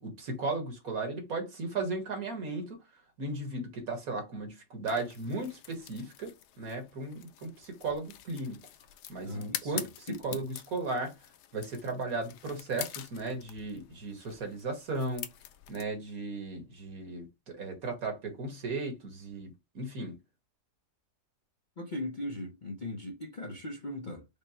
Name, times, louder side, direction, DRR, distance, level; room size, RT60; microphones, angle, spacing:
voice 1, 0.0-2.8 3.2-8.6 9.1-11.1 11.5-15.3 15.7-20.2, right 3 dB, 60° right, 1.8 m, -36 dB
sound 1, 4.9-15.8, left 11 dB, 90° left, 1.2 m, -45 dB
voice 2, 9.2-10.4 21.8-24.2, left 1 dB, 45° left, 0.6 m, -39 dB
5.2 x 2.1 x 4.3 m
omnidirectional pair, 1.7 m